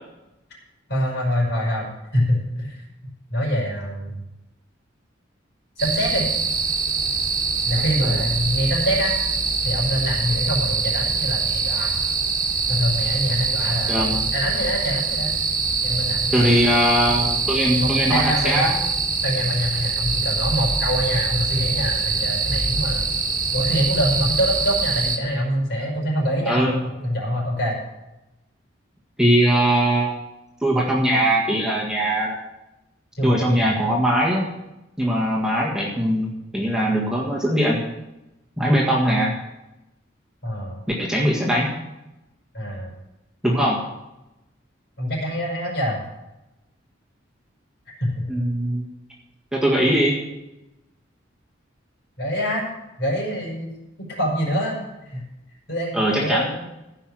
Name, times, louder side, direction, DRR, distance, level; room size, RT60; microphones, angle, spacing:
voice 1, 0.9-2.8 3.3-4.2 5.8-6.3 7.6-9.1 9.6-11.9 12.7-15.3 15.8-16.4 17.8-18.7 19.2-23.1 23.5-26.7 27.0-27.8 33.2-33.9 40.4-40.8 42.5-42.9 45.0-46.0 48.0-48.1 52.2-52.6 53.0-53.7 54.0-55.2 55.7-56.6, equal, 60° left, -2 dB, 5.4 m, -25 dB
sound 1, 5.8-25.2, right 4 dB, 40° right, 1.7 m, -24 dB
voice 2, 7.7-8.2 13.9-14.2 16.3-18.9 26.5-26.7 29.2-30.2 30.6-32.4 33.2-34.5 35.0-37.8 38.6-39.3 41.0-41.7 43.4-43.8 48.3-48.9 49.5-50.2 55.9-56.5, right 1 dB, 5° right, -4 dB, 1.7 m, -21 dB
15.5 x 5.8 x 7.6 m, 0.95 s
head